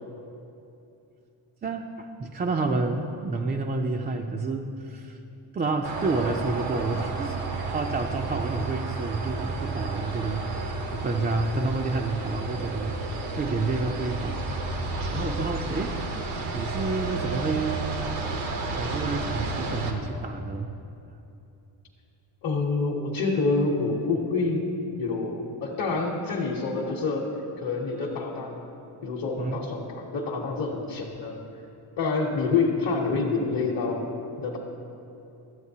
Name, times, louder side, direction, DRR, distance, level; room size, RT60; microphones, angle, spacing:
voice 1, 1.6-5.2 5.5-13.0 13.4-14.5 14.8-16.0 16.4-17.8 18.7-20.7 29.4-29.6, right 3 dB, 25° right, 2 dB, 0.3 m, -29 dB
sound 1, 5.8-19.9, right 3 dB, 85° right, 1.0 m, -31 dB
voice 2, 22.4-24.7 25.0-28.6 29.0-31.3 32.0-34.1 34.4-34.6, left 3 dB, 50° left, -3 dB, 1.0 m, -27 dB
12.5 x 7.8 x 2.8 m, 2.8 s
cardioid pair, 85°, 47 cm